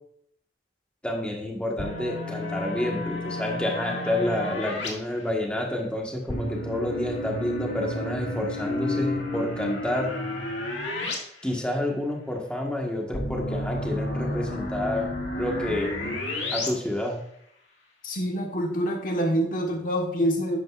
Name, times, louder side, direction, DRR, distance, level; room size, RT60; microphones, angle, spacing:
voice 1, 1.0-10.1 11.4-15.1 15.4-16.1 16.5-17.2, left 1 dB, 5° left, -1 dB, 1.4 m, -29 dB
sound 1, 1.8-4.9 6.3-11.2 11.5-11.6 13.1-16.7, left 1 dB, 85° left, 2.0 m, -31 dB
voice 2, 18.0-20.6, equal, 50° left, 2 dB, 1.3 m, -26 dB
12.0 x 9.0 x 2.5 m, 0.70 s
head